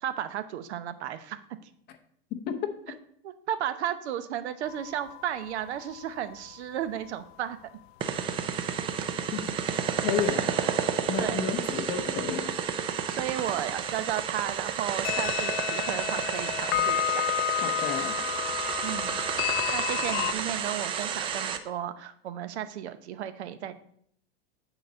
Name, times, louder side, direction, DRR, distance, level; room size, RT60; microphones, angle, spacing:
voice 1, 0.0-1.7 3.2-7.6 10.5-10.7 11.2-11.9 12.9-17.3 18.8-19.2 19.7-23.7, right 10 dB, 80° right, 11 dB, 0.9 m, -34 dB
sound 1, 4.6-6.6 6.8-6.9 7.2-7.3 14.2-14.3 15.0-20.3, left 13 dB, 70° left, 0.5 m, -31 dB
sound 2, 8.0-21.6, right 8 dB, 15° right, 0.3 m, -31 dB
voice 2, 10.0-10.5 11.1-12.5 17.6-18.2, left 8 dB, 30° left, 8 dB, 0.8 m, -31 dB
9.1 x 4.2 x 5.4 m, 0.65 s
supercardioid pair, 140°, 33 cm